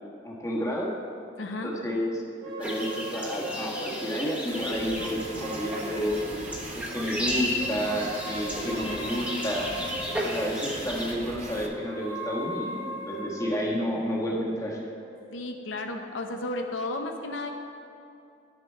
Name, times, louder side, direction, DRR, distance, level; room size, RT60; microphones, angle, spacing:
voice 1, 0.2-0.9 1.6-2.2 2.6-6.2 6.7-9.7 10.2-14.8, equal, 15° left, -3 dB, 1.3 m, -30 dB
voice 2, 1.4-1.7 15.3-17.5, left 2 dB, 85° left, 4 dB, 0.7 m, -33 dB
sound 1, 2.4-6.6 7.3-10.8 11.6-16.0, right 1 dB, 90° right, 1.6 m, -40 dB
sound 2, 2.6-11.1, equal, 10° right, 1.1 m, -34 dB
sound 3, 4.5-11.7, right 2 dB, 40° right, 0.7 m, -41 dB
10.0 x 6.7 x 4.4 m, 2.6 s
head